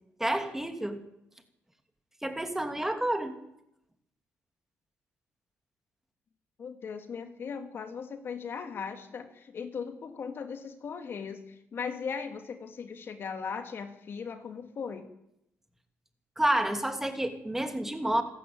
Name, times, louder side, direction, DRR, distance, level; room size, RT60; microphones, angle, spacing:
voice 1, 0.2-1.0 2.2-3.3 16.4-18.2, right 1 dB, 5° right, 6 dB, 2.7 m, -29 dB
voice 2, 6.6-15.1, left 6 dB, 50° left, 7 dB, 2.5 m, -38 dB
28.0 x 13.0 x 8.8 m, 0.81 s
cardioid pair, 115°, 5 cm